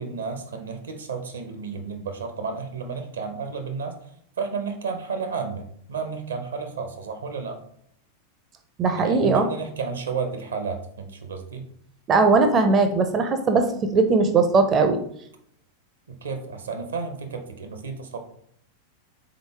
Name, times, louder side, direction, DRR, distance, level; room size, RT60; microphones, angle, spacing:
voice 1, 0.0-4.1 4.4-7.6 8.9-11.6 16.1-18.2, right 5 dB, 70° right, 6 dB, 0.6 m, -32 dB
voice 2, 8.8-9.4 12.1-15.0, right 4 dB, 25° right, 7 dB, 0.4 m, -19 dB
3.8 x 3.8 x 3.4 m, 0.67 s
figure-of-eight pair, 90°, 0 cm